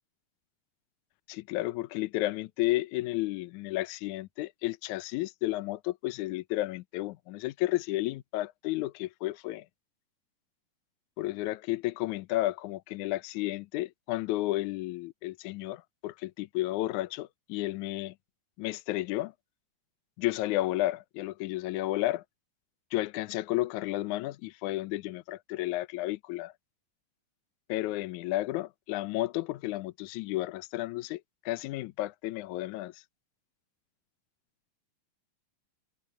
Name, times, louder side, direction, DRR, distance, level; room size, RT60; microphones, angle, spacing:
voice 1, 1.3-9.7 11.2-18.1 18.6-19.3 20.2-22.2 22.9-26.5 27.7-33.0, left 17 dB, 75° left, 2.0 m, -32 dB
omnidirectional pair, 4.0 m